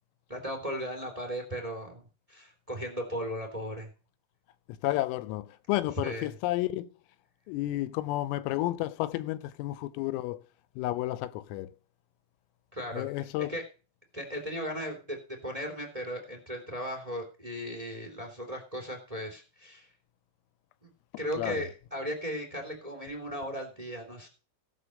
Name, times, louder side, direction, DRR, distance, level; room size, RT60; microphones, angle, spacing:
voice 1, 0.3-3.9 5.9-6.4 12.7-13.6 14.1-19.9 20.8-20.9 21.2-24.3, equal, 20° right, 1.0 m, -37 dB
voice 2, 4.8-6.9 7.5-10.4 10.8-11.7 12.9-13.5 21.4-21.6, left 16 dB, 85° left, 3.3 m, -31 dB
17.0 x 6.5 x 6.5 m
omnidirectional pair, 6.0 m